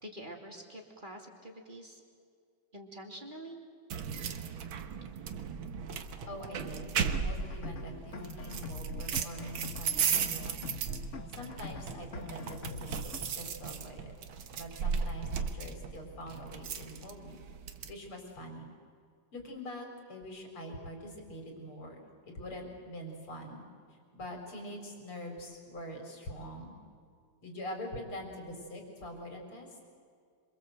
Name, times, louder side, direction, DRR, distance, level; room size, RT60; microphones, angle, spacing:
voice 1, 0.0-2.0 2.7-3.6, right 1 dB, 20° right, 1 dB, 2.9 m, -46 dB
sound 1, 3.9-17.9, right 6 dB, 70° right, 2.0 m, -36 dB
voice 2, 6.3-10.7 11.4-14.1 14.6-17.4 17.9-18.7 19.3-22.0 22.2-26.7 27.4-29.8, equal, 75° left, 3 dB, 5.2 m, -44 dB
sound 2, 7.0-13.2, left 4 dB, 40° left, 1.3 m, -44 dB
27.0 x 25.0 x 8.0 m, 2.2 s
omnidirectional pair, 2.4 m